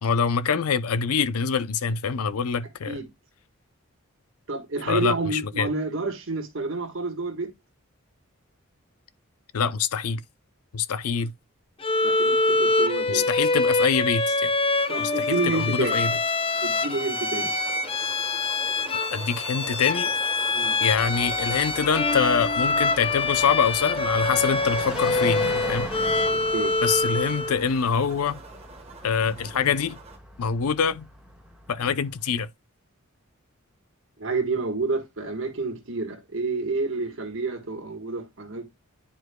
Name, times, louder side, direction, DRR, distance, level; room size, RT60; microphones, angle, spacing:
voice 1, 0.0-3.0 4.9-5.7 9.5-10.2 10.7-11.3 13.1-14.5 15.0-16.1 19.1-20.1 20.8-25.9 26.8-28.4 29.0-30.0 30.4-31.1 31.7-32.5, left 6 dB, 80° left, 0.5 m, -25 dB
voice 2, 4.5-7.5 11.1-11.2 12.0-13.3 14.9-16.0 16.6-17.5 20.5-20.8 26.5-26.7 34.2-38.6, right 3 dB, 60° right, 1.5 m, -29 dB
Bowed string instrument, 11.8-27.6, left 3 dB, 25° left, 0.5 m, -25 dB
sound 1, 14.7-30.2, right 3 dB, 30° right, 1.3 m, -43 dB
Car passing by, 20.9-32.0, right 1 dB, 5° right, 1.5 m, -40 dB
10.0 x 4.6 x 2.2 m
head